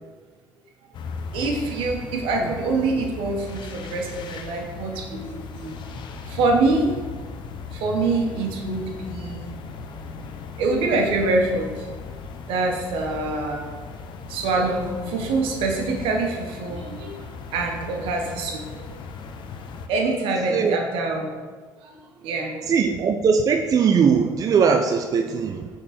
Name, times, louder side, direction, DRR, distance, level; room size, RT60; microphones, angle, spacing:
sound 1, 0.9-19.9, left 4 dB, 60° left, 0.6 m, -37 dB
voice 1, 1.3-5.8 6.2-7.1 7.7-9.6 10.1-11.9 12.5-13.7 14.3-19.0 19.9-21.4 21.8-22.6, right 3 dB, 80° right, 1 dB, 1.1 m, -25 dB
voice 2, 20.5-20.8 22.7-25.7, right 6 dB, 40° right, 5 dB, 0.4 m, -20 dB
6.5 x 3.8 x 4.2 m, 1.5 s
supercardioid pair, 85°, 9 cm